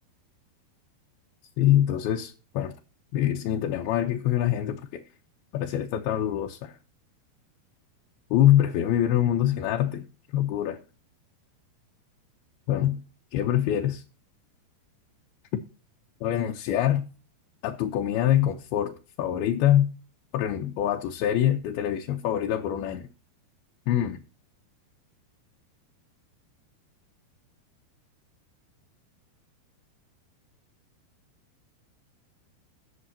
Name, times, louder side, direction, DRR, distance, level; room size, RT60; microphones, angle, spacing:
voice 1, 1.6-2.8 3.1-5.0 5.5-6.8 8.3-10.1 10.3-10.8 12.7-13.0 13.3-14.0 16.2-17.0 17.6-19.9 20.3-23.1 23.9-24.2, left 11 dB, 80° left, 2.7 m, -24 dB
19.0 x 7.2 x 2.8 m
omnidirectional pair, 4.6 m